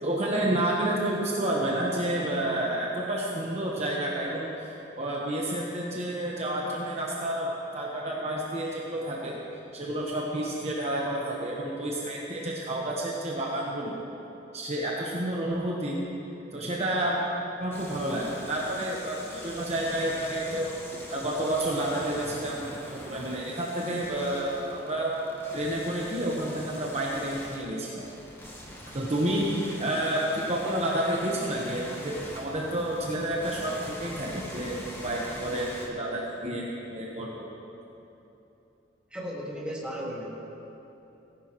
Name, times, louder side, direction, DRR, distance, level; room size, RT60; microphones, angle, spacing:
voice 1, 0.0-9.4 9.7-14.0 14.5-16.0 16.5-17.2 17.6-20.7 21.1-22.6 22.9-25.2 25.5-28.0 28.9-37.4, right 1 dB, 35° right, -3 dB, 1.1 m, -30 dB
sound 1, 17.7-35.9, equal, 15° left, 1.5 m, -43 dB
voice 2, 39.1-40.5, equal, 5° right, -5 dB, 1.9 m, -35 dB
18.5 x 11.0 x 3.1 m, 3.0 s
head